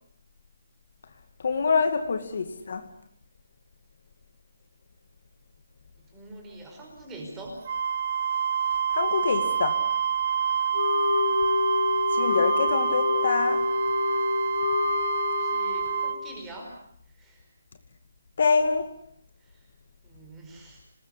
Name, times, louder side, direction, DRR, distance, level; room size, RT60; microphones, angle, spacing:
voice 1, 1.4-2.9 8.9-9.8 12.1-13.7 18.4-18.9, left 5 dB, 45° left, 7 dB, 2.2 m, -25 dB
voice 2, 6.0-7.6 15.2-16.8 17.1-17.5 19.4-19.7 20.0-20.8, right 2 dB, 10° right, 1 dB, 4.9 m, -44 dB
Wind instrument woodwind instrument, 7.6-16.2, right 8 dB, 30° right, 1.1 m, -27 dB
Wind instrument woodwind instrument 2, 10.7-16.4, left 4 dB, 65° left, 3.4 m, -27 dB
26.5 x 20.5 x 8.3 m, 0.68 s
hypercardioid pair, 175°, 0 cm